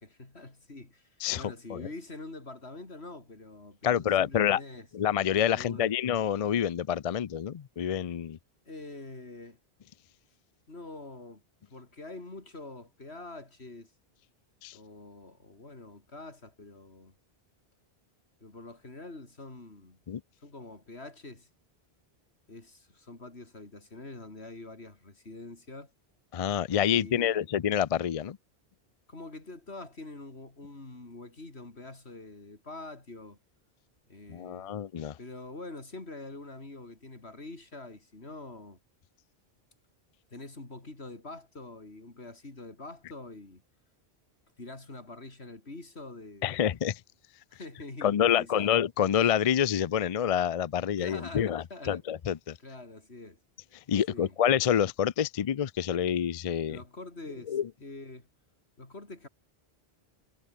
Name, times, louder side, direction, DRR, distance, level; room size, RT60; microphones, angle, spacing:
voice 1, 0.0-4.9 5.5-5.9 8.7-9.6 10.7-11.4 11.7-13.9 14.7-17.1 18.4-20.0 20.4-21.5 22.5-25.9 26.9-27.5 29.1-33.4 34.1-34.8 35.2-38.8 40.3-43.6 44.6-46.7 47.5-48.7 51.0-52.0 52.6-53.4 54.1-54.4 56.7-58.3 58.8-59.3, left 2 dB, 85° left, 4.3 m, -45 dB
voice 2, 1.2-1.9 3.8-4.6 4.9-8.4 14.6-14.8 20.1-20.2 26.3-28.4 34.3-35.2 46.4-47.0 48.0-52.6 53.9-56.8 57.5-57.7, left 9 dB, 45° left, 0.5 m, -27 dB
omnidirectional pair, 1.1 m